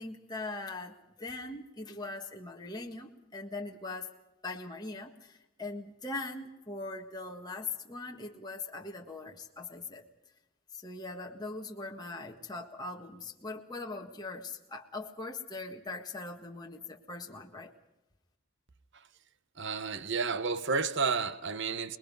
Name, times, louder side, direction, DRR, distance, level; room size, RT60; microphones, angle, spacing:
voice 1, 0.0-4.1 4.4-10.1 10.7-17.7, left 3 dB, 20° left, 1.5 m, -41 dB
voice 2, 19.6-22.0, right 4 dB, 55° right, 1.0 m, -31 dB
26.5 x 21.0 x 5.3 m
head